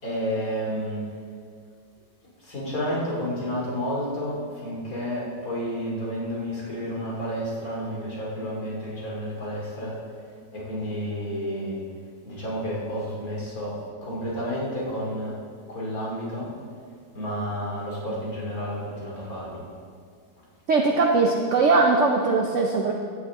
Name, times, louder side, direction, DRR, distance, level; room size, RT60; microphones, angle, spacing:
voice 1, 0.0-1.1 2.4-10.0 10.5-11.8 12.2-15.3 15.7-16.5 17.1-19.6, equal, 60° left, -5 dB, 3.3 m, -31 dB
voice 2, 20.7-22.9, right 3 dB, 55° right, 1 dB, 0.9 m, -20 dB
15.0 x 9.4 x 3.7 m, 2.1 s
omnidirectional pair, 1.8 m